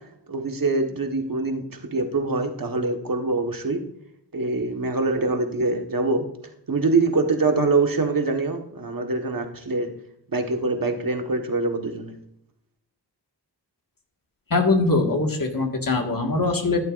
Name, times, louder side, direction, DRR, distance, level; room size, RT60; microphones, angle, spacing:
voice 1, 0.3-3.8 4.3-6.2 6.7-9.9 10.3-12.1, right 3 dB, 50° right, 4 dB, 1.5 m, -24 dB
voice 2, 14.5-16.8, left 3 dB, 50° left, 3 dB, 1.8 m, -22 dB
13.5 x 11.0 x 2.6 m, 0.77 s
wide cardioid pair, 70°, 42 cm